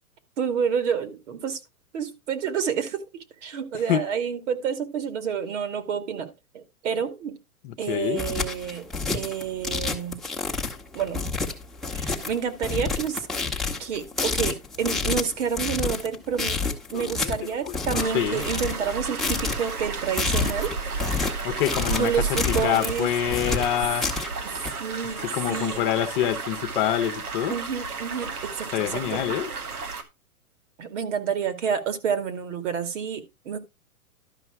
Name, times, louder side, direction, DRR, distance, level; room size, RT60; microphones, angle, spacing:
voice 1, 0.4-1.6 1.9-3.0 3.4-7.4 7.8-8.8 9.1-10.2 10.9-11.3 11.9-13.3 13.8-16.6 16.9-20.7 21.9-23.1 24.8-25.9 27.5-29.2 30.8-33.6, right 7 dB, 55° right, 2.3 m, -29 dB
voice 2, 7.6-8.2 16.9-17.3 17.7-18.4 21.4-22.1 22.5-24.1 25.3-27.5 28.7-29.5, left 11 dB, 35° left, 1.2 m, -26 dB
sound 1, 7.9-24.7, left 4 dB, ahead, 1.4 m, -29 dB
sound 2, 18.0-30.0, right 4 dB, 85° right, 2.5 m, -33 dB
12.5 x 5.4 x 4.8 m
hypercardioid pair, 140°, 43 cm